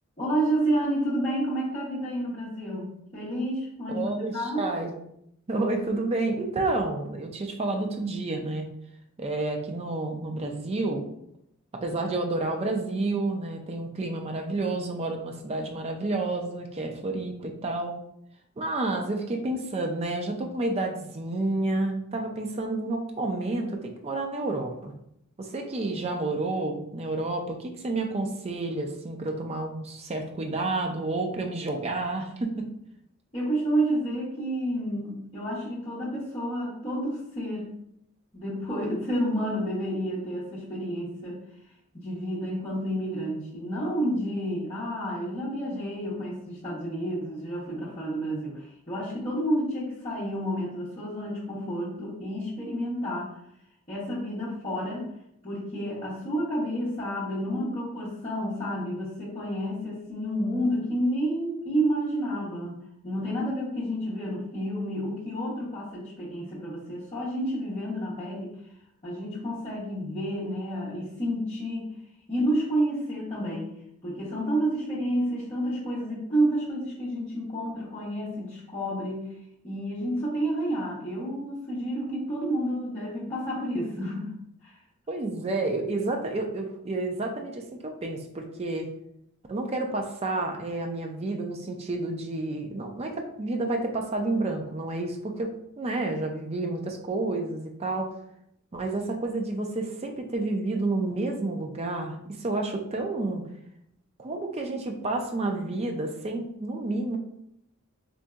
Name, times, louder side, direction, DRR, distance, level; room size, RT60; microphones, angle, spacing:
voice 1, 0.2-4.6 33.3-37.7 38.3-41.4 41.9-53.4 53.9-55.1 55.4-68.5 69.0-71.9 72.3-73.7 74.0-79.3 79.6-84.8, right 1 dB, 25° left, -11 dB, 0.8 m, -30 dB
voice 2, 3.9-4.9 5.5-8.7 9.2-11.0 11.7-17.9 18.6-24.9 25.4-32.7 85.1-88.9 89.5-98.1 98.7-103.4 104.2-107.2, right 2 dB, 25° right, 3 dB, 0.4 m, -30 dB
3.9 x 2.6 x 2.3 m, 0.75 s
head